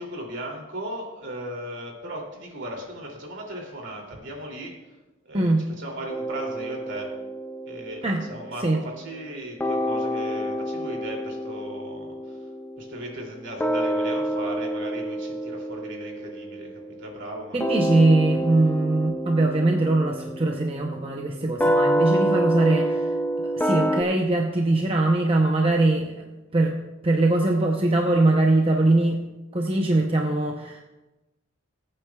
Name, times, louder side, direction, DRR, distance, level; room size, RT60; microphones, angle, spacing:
voice 1, 0.0-4.7 5.2-7.1 7.7-12.4 12.8-16.7 17.0-17.6 18.1-18.2, equal, 60° right, -1 dB, 2.8 m, -37 dB
sound 1, 6.1-9.3 9.6-24.0, right 1 dB, 10° left, 0.5 m, -28 dB
voice 2, 17.5-26.2 26.5-26.7 27.0-29.2 29.5-30.8, right 2 dB, 30° right, 1 dB, 0.7 m, -22 dB
21.5 x 8.7 x 2.3 m, 1.1 s
head